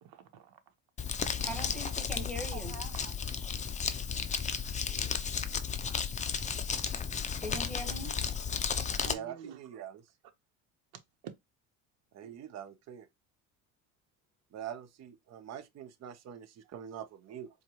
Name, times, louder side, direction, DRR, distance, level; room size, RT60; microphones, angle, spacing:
voice 1, 0.0-0.7 1.4-1.5 2.5-3.2 4.8-5.4 8.9-9.8 11.2-11.3 12.2-12.4, right 8 dB, 65° right, 1.1 m, -49 dB
Crumpling crinkling, 1.0-9.1, left 6 dB, 20° left, 0.5 m, -34 dB
voice 2, 1.4-2.7 7.4-8.2, equal, ahead, 1.4 m, -40 dB
voice 3, 9.1-10.0 12.1-13.1 14.5-17.5, right 9 dB, 45° right, 0.8 m, -44 dB
4.6 x 2.4 x 3.0 m
supercardioid pair, 95°, 37 cm